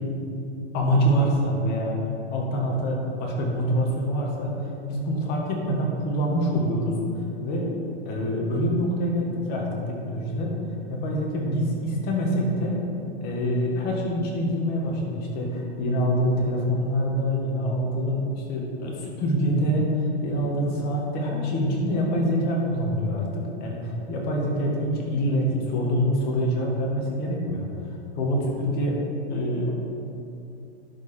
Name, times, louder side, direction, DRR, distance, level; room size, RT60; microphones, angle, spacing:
voice 1, 0.7-2.0 2.3-7.7 8.0-10.6 10.9-12.8 13.2-29.0 29.3-29.7, equal, 30° left, -1 dB, 1.6 m, -25 dB
11.5 x 4.9 x 4.3 m, 2.6 s
hypercardioid pair, 145°, 34 cm